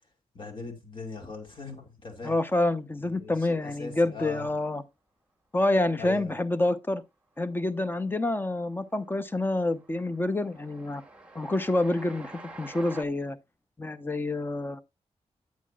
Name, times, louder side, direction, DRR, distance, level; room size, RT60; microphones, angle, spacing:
voice 1, 0.3-2.3 3.0-4.5 6.0-6.3, left 3 dB, 45° left, 2.6 m, -40 dB
voice 2, 2.2-4.8 5.5-7.0 7.4-11.0 11.3-12.3 12.6-13.4 13.8-14.8, left 2 dB, 15° left, 0.7 m, -27 dB
Train, 7.3-7.8 8.1-13.0, right 2 dB, 10° right, 1.5 m, -48 dB
9.4 x 8.3 x 2.4 m
wide cardioid pair, 115°, 12 cm